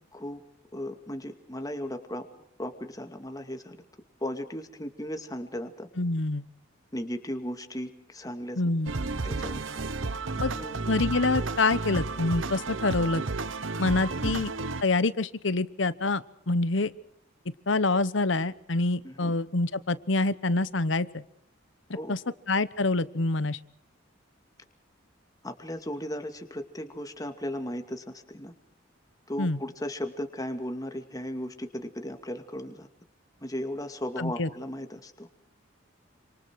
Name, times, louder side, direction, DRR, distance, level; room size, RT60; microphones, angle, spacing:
voice 1, 0.7-2.2 2.6-3.8 4.2-5.9 6.9-8.6 9.2-9.6 10.4-10.8 14.2-14.3 19.0-19.3 21.9-22.2 25.4-28.5 29.3-32.9 33.4-35.3, left 1 dB, 20° left, 6 dB, 2.4 m, -36 dB
voice 2, 6.0-6.4 8.6-8.9 10.4-10.5 10.9-13.2 13.8-14.5 14.8-16.9 17.7-21.2 22.1-22.2 22.5-23.6 29.4-29.6 34.2-34.5, left 3 dB, 65° left, 16 dB, 1.1 m, -26 dB
sound 1, 8.9-14.8, right 3 dB, 75° right, 1.0 m, -32 dB
28.0 x 26.0 x 4.8 m, 0.68 s
head